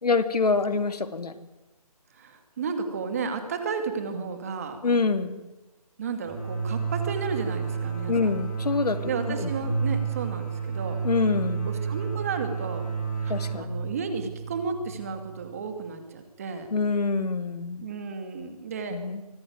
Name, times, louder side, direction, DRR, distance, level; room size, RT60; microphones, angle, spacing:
voice 1, 0.0-1.4 4.8-5.4 8.1-9.5 11.0-11.7 13.3-13.7 16.7-17.8 18.9-19.2, left 4 dB, 90° left, 10 dB, 2.7 m, -26 dB
voice 2, 2.1-4.8 6.0-8.4 9.0-11.0 11.6-12.9 13.2-16.7 17.8-19.0, right 5 dB, 25° right, 7 dB, 2.3 m, -33 dB
sound 1, 6.3-15.7, right 5 dB, 5° left, 5.7 m, -31 dB
24.5 x 17.0 x 9.4 m, 1.0 s
hypercardioid pair, 175°, 20 cm